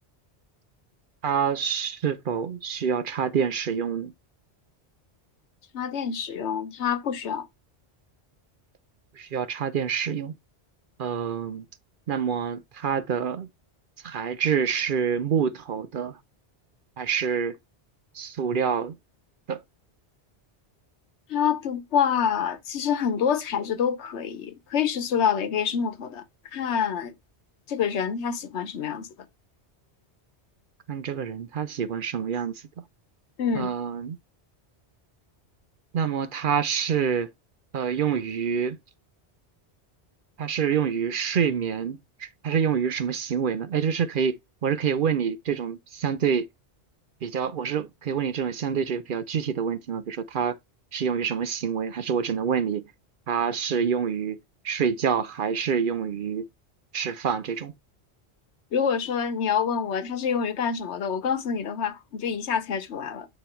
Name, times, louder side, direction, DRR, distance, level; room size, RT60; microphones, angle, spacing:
voice 1, 1.2-4.1 9.1-10.3 11.0-11.7 12.1-13.5 14.0-16.2 17.0-17.6 18.1-19.0 19.5-19.6 30.9-32.6 33.5-34.2 35.9-37.3 37.7-38.8 40.4-46.5 47.2-50.6 50.9-52.9 53.3-54.4 54.6-56.5 56.9-57.7, right 7 dB, 60° right, 0.7 m, -27 dB
voice 2, 5.7-7.5 21.3-26.2 26.5-27.1 27.7-29.1 33.4-33.7 58.7-63.3, left 7 dB, 85° left, 1.1 m, -27 dB
8.8 x 3.0 x 4.3 m
omnidirectional pair, 1.1 m